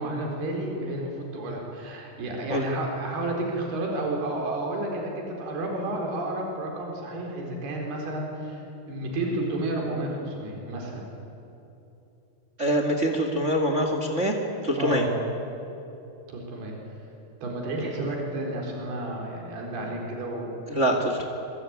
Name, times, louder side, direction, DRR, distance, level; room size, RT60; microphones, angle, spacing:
voice 1, 0.0-11.0 14.8-15.1 16.3-16.7 17.4-20.7, right 1 dB, 75° right, 0 dB, 6.2 m, -31 dB
voice 2, 12.6-14.3 14.6-15.0 20.7-21.3, equal, 25° right, 4 dB, 1.6 m, -24 dB
26.0 x 23.0 x 9.6 m, 2.9 s
omnidirectional pair, 4.6 m